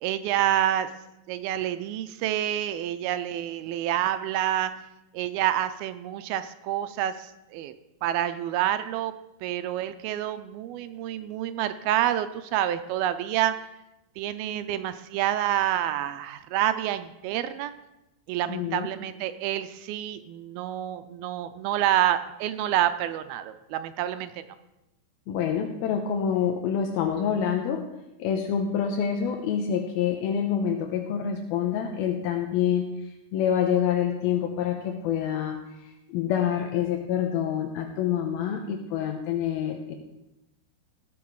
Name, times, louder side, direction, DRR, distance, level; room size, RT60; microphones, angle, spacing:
voice 1, 0.0-0.9 1.3-4.7 5.1-7.8 8.0-9.1 9.4-13.7 14.2-17.7 18.3-24.4, right 12 dB, 80° right, 11 dB, 2.4 m, -28 dB
voice 2, 18.5-18.9 25.3-27.8 28.2-32.9 33.3-35.6 36.1-40.0, left 8 dB, 80° left, 3 dB, 2.6 m, -27 dB
17.5 x 7.1 x 4.7 m, 0.93 s
omnidirectional pair, 4.4 m